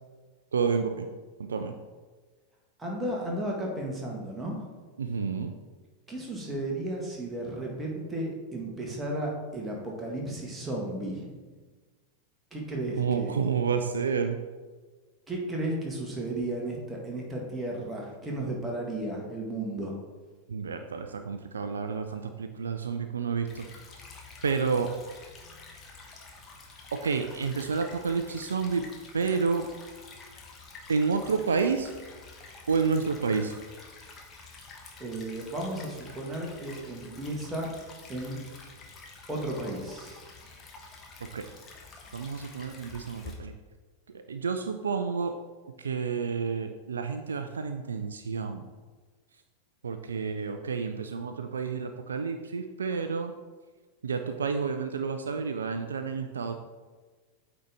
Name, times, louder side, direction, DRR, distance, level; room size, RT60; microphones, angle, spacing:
voice 1, 0.5-1.1 1.4-1.8 5.0-5.5 13.0-14.4 20.5-23.7 24.4-24.9 26.9-28.9 29.1-29.7 30.9-31.9 32.7-33.6 41.2-41.4 42.1-43.5 44.3-45.3 45.8-48.7 49.8-53.3 54.0-56.5, right 5 dB, 70° right, 7 dB, 0.3 m, -29 dB
voice 2, 2.8-4.6 6.1-11.3 12.5-13.3 15.3-20.0 35.0-37.7 38.1-38.4 39.3-40.2, right 1 dB, 10° right, -2 dB, 1.6 m, -34 dB
Stream / Trickle dribble, 23.5-43.3, left 3 dB, 25° left, 1.1 m, -48 dB
8.5 x 4.0 x 3.4 m, 1.4 s
figure-of-eight pair, 90°, 0 cm